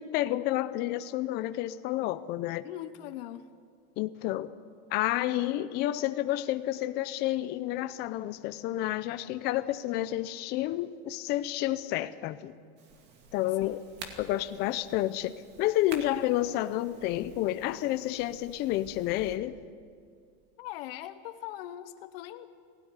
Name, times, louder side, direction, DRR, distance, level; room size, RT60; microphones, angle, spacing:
voice 1, 0.0-2.7 4.0-4.5 4.9-12.5 13.3-13.8 14.2-19.6, left 14 dB, 35° left, 10 dB, 0.7 m, -30 dB
voice 2, 2.6-3.5 13.6-13.8 20.6-22.5, left 13 dB, 65° left, 10 dB, 1.1 m, -41 dB
sound 1, 12.8-19.4, right 4 dB, 35° right, 2.3 m, -49 dB
21.0 x 17.0 x 9.8 m, 2.2 s
supercardioid pair, 170°, 31 cm